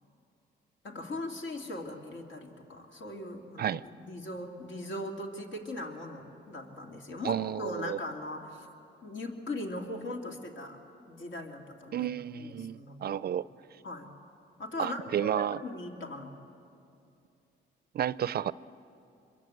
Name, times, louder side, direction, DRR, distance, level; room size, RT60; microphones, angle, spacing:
voice 1, 0.8-8.7 9.0-10.8 11.1-12.1 12.4-13.4 13.8-14.1 14.6-16.3, left 1 dB, 70° left, 2 dB, 2.9 m, -39 dB
voice 2, 7.2-8.0 11.9-13.5 14.8-15.6 17.9-18.5, right 10 dB, 50° right, 18 dB, 0.5 m, -31 dB
24.5 x 23.0 x 7.9 m, 2.7 s
cardioid pair, 90°, 20 cm